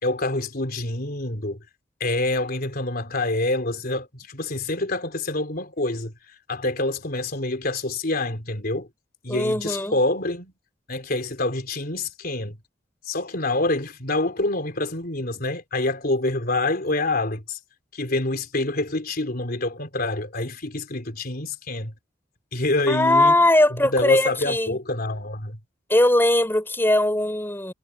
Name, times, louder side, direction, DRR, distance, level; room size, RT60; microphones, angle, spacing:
voice 1, 0.0-1.6 2.0-8.9 9.2-10.5 10.9-12.6 13.0-17.6 17.9-21.9 22.5-23.4 23.7-25.6, left 2 dB, 50° left, 3.8 m, -26 dB
voice 2, 9.3-10.0 22.9-24.8 25.9-27.7, left 1 dB, 10° left, 4.4 m, -20 dB
head